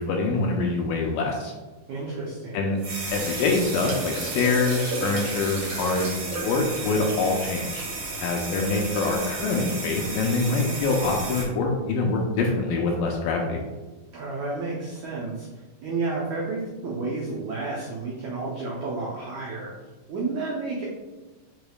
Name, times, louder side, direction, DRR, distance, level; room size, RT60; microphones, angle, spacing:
voice 1, 0.0-1.5 2.5-2.8 3.1-7.9 8.2-13.6, left 3 dB, 80° left, 1 dB, 2.1 m, -25 dB
voice 2, 1.9-2.7 14.1-15.5 15.8-19.7 20.1-20.8, right 3 dB, 75° right, -3 dB, 1.7 m, -31 dB
sound 1, 2.8-11.4, right 2 dB, 55° right, 1.6 m, -32 dB
6.7 x 6.2 x 2.3 m, 1.2 s
omnidirectional pair, 4.4 m